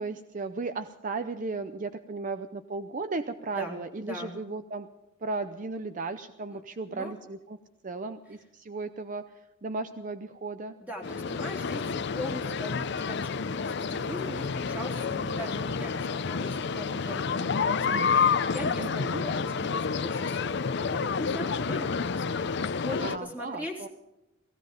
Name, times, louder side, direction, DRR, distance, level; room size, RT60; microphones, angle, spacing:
voice 1, 0.0-4.9 5.2-7.6 7.8-10.8 18.8-19.2 23.0-23.9, right 3 dB, 40° right, 10 dB, 0.6 m, -35 dB
voice 2, 3.6-4.3 6.5-6.6 6.9-7.1 10.8-23.9, equal, 10° right, 0 dB, 3.5 m, -40 dB
sound 1, 11.0-23.2, left 5 dB, 60° left, 0.6 m, -29 dB
16.5 x 16.0 x 5.2 m, 0.95 s
head